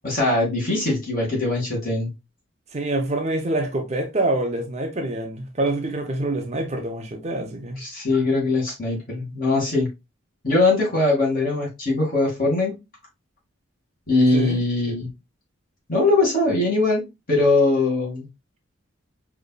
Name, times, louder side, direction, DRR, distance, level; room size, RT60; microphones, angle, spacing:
voice 1, 0.0-2.1 7.8-9.9 10.4-12.7 14.1-15.1 15.9-17.0 17.3-18.3, left 2 dB, 45° left, 2.1 m, -21 dB
voice 2, 2.7-7.8 14.3-14.6, right 2 dB, 35° right, 0.6 m, -26 dB
5.1 x 2.9 x 2.2 m
head